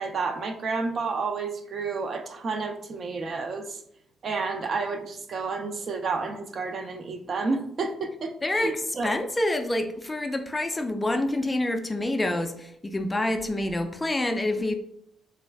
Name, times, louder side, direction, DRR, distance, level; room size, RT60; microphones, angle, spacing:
voice 1, 0.0-3.8 4.2-9.2, right 4 dB, 50° right, 6 dB, 0.4 m, -30 dB
voice 2, 8.4-14.7, left 1 dB, 15° left, 6 dB, 0.3 m, -27 dB
3.3 x 2.3 x 3.3 m, 0.72 s
cardioid pair, 110°, 0 cm